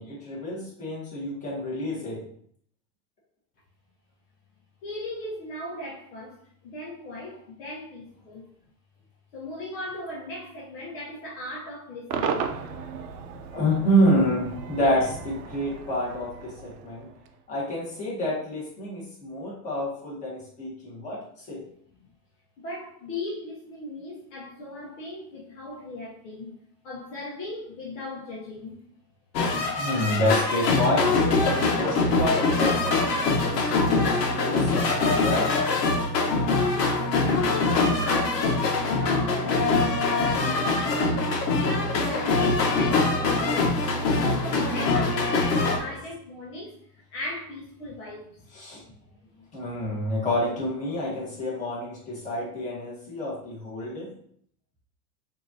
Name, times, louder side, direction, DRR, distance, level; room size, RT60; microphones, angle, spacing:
voice 1, 0.0-2.2 13.5-17.1 17.5-21.2 21.5-21.6 29.8-35.5 45.8-45.9 48.5-48.8 49.5-54.1, equal, 15° left, 1.7 m, -28 dB
voice 2, 4.8-8.4 9.3-12.5 22.6-26.5 26.8-28.8 37.2-46.7 47.1-48.3, left 1 dB, 50° left, 1.2 m, -37 dB
Cheering / Crowd / Fireworks, 12.1-17.4, right 6 dB, 80° right, 0.8 m, -35 dB
sound 1, 29.4-45.8, left 3 dB, 85° left, 1.1 m, -23 dB
6.4 x 2.9 x 2.8 m
supercardioid pair, 150°, 48 cm